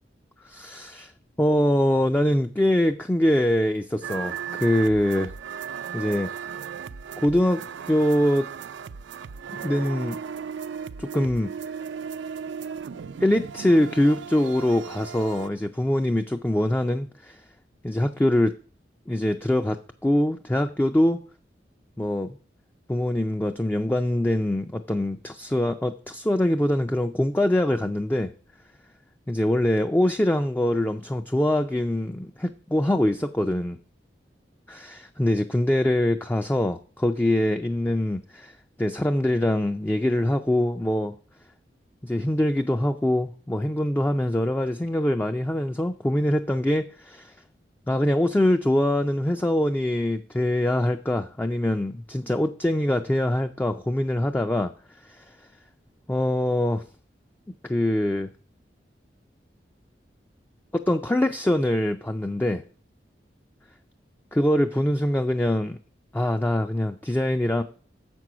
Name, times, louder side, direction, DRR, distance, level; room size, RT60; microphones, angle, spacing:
voice 1, 0.4-1.1 1.4-5.3 5.9-6.3 7.2-8.5 9.6-10.2 11.0-11.5 13.2-17.4 17.8-18.6 19.1-19.8 20.0-21.2 22.0-22.4 22.9-28.3 29.3-33.8 34.7-38.5 38.8-41.2 42.0-47.3 47.9-54.7 55.0-55.3 56.1-56.8 57.6-58.3 60.7-62.6 64.3-65.8 66.1-67.6, left 1 dB, 10° left, 6 dB, 0.3 m, -23 dB
sound 1, 4.0-15.5, right 7 dB, 85° right, 0.4 m, -36 dB
7.4 x 6.1 x 6.0 m, 0.42 s
head